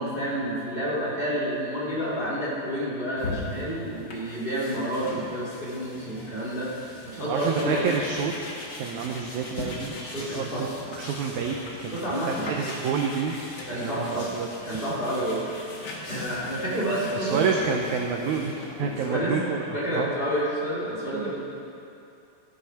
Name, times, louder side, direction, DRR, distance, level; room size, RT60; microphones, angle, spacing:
voice 1, 0.0-7.8 10.0-10.6 11.9-12.6 13.7-14.3 14.6-15.7 16.1-17.4 19.0-19.4 19.7-21.4, equal, 15° left, -8 dB, 2.1 m, -29 dB
sound 1, 3.2-19.1, left 2 dB, 65° left, 1.0 m, -40 dB
voice 2, 7.2-8.3 8.8-12.0 12.3-13.4 13.8-14.5 17.1-19.6 19.9-20.1 21.1-21.4, right 6 dB, 80° right, 2 dB, 1.7 m, -29 dB
13.5 x 8.1 x 5.8 m, 2.7 s
omnidirectional pair, 4.2 m